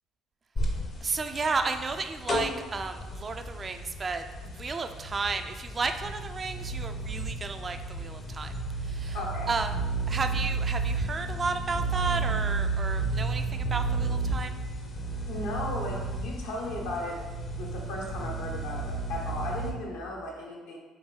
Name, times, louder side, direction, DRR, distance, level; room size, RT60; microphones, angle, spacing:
sound 1, 0.6-19.7, right 3 dB, 40° left, 0.6 m, -32 dB
voice 1, 1.0-4.2 4.5-8.5 8.8-9.2 9.5-9.8 10.1-14.6, right 4 dB, 35° right, 7 dB, 0.3 m, -32 dB
voice 2, 9.1-9.5 15.3-17.2 17.6-20.8, left 1 dB, 75° left, -2 dB, 0.9 m, -36 dB
3.8 x 3.3 x 3.1 m, 1.2 s
hypercardioid pair, 55°, 0 cm